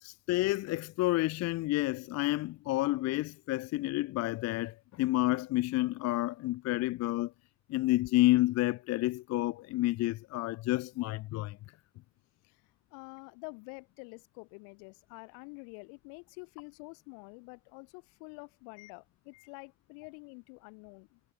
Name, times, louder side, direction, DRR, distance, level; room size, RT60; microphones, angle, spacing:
voice 1, 0.0-7.3 7.7-11.6, left 18 dB, 45° left, 0.5 m, -30 dB
voice 2, 12.9-21.2, left 40 dB or more, 70° left, 1.2 m, -48 dB
hypercardioid pair, 60°, 37 cm